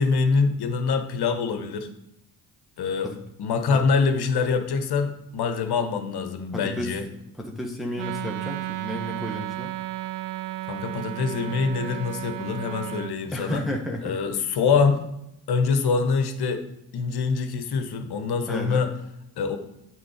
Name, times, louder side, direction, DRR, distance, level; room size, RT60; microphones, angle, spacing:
voice 1, 0.0-1.9 2.8-3.1 3.4-7.1 10.7-13.6 14.0-15.1 15.5-16.6 16.9-18.9 19.4-19.6, left 5 dB, 55° left, 7 dB, 1.1 m, -24 dB
voice 2, 6.5-6.9 7.4-9.7 13.3-14.1 18.5-18.9, left 1 dB, ahead, 0 dB, 1.2 m, -32 dB
Wind instrument woodwind instrument, 7.9-13.2, right 15 dB, 80° right, 0.5 m, -33 dB
8.8 x 3.7 x 4.8 m, 0.85 s
hypercardioid pair, 45°, 45 cm